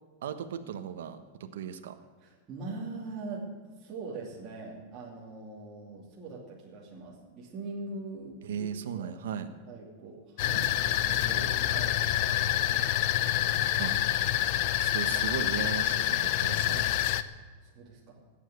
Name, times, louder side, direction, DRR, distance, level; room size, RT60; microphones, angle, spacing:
voice 1, 0.2-2.0 8.5-9.5 13.8-13.9 14.8-16.9, right 8 dB, 85° right, 8 dB, 1.2 m, -37 dB
voice 2, 2.2-8.7 9.0-9.1 9.6-12.0 12.7-13.8 17.3-18.2, right 3 dB, 20° right, -6 dB, 2.8 m, -42 dB
sound 1, 10.4-17.2, left 13 dB, 40° left, 0.6 m, -27 dB
17.5 x 9.1 x 8.0 m, 1.4 s
supercardioid pair, 180°, 0 cm